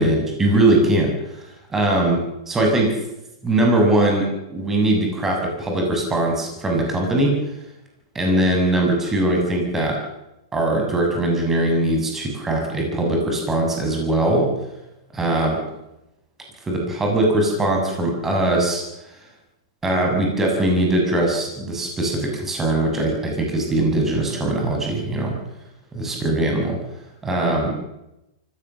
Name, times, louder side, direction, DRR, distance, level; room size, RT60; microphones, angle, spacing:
voice 1, 0.0-2.2 2.5-2.9 3.4-7.3 8.2-10.0 10.5-14.5 15.1-15.6 16.6-19.1 19.8-25.4 25.9-26.8 27.2-27.7, right 1 dB, 15° right, 0 dB, 7.0 m, -21 dB
24.5 x 17.0 x 7.0 m, 0.92 s
hypercardioid pair, 105°, 2 cm